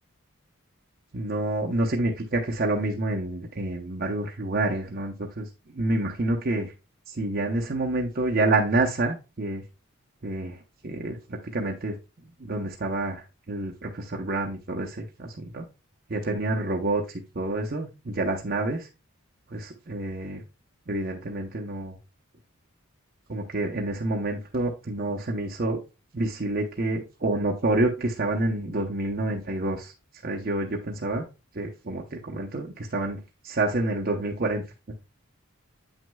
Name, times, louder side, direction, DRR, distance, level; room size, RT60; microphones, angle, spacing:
voice 1, 1.1-5.5 5.7-6.7 7.1-9.6 10.2-10.6 10.8-12.0 12.4-15.6 16.1-18.9 19.5-20.4 20.9-22.0 23.3-25.8 26.1-29.9 30.2-31.2 31.5-34.6, right 2 dB, 40° right, 0 dB, 0.7 m, -28 dB
8.3 x 6.1 x 2.2 m, 0.28 s
head